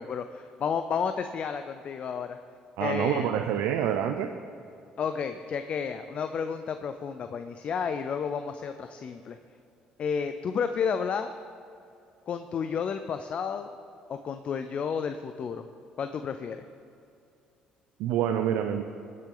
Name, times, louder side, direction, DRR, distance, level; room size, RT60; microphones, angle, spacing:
voice 1, 0.0-2.4 2.8-3.3 5.0-9.4 10.0-11.3 12.3-13.7 14.1-15.7 16.0-16.6, left 6 dB, 50° left, 9 dB, 0.5 m, -31 dB
voice 2, 2.8-4.3 18.0-18.8, right 9 dB, 85° right, 6 dB, 0.5 m, -27 dB
19.0 x 7.5 x 3.9 m, 2.6 s
cardioid pair, 90°, 3 cm